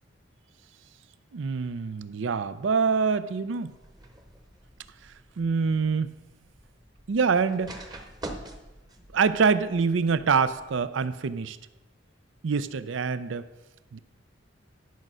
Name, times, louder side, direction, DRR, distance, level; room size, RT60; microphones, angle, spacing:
voice 1, 1.3-3.7 5.0-6.1 7.1-7.8 9.1-11.6 12.4-13.5 13.9-14.0, right 5 dB, 75° right, 14 dB, 0.5 m, -25 dB
jump from a chair, 3.7-10.8, right 1 dB, 20° right, 0.9 m, -46 dB
11.5 x 5.4 x 6.2 m, 1.1 s
head